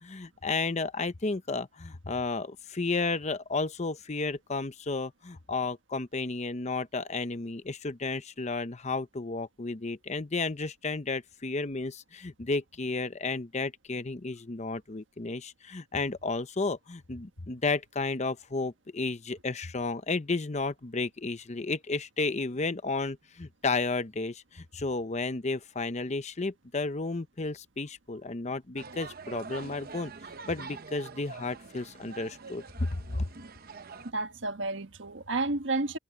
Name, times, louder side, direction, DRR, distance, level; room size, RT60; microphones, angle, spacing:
voice 1, 0.0-30.1 30.5-33.3, left 3 dB, 35° left, 0.8 m, -32 dB
sound 1, 28.8-34.1, right 4 dB, 50° right, 0.9 m, -45 dB
voice 2, 34.0-36.0, right 2 dB, 75° right, 1.4 m, -31 dB
head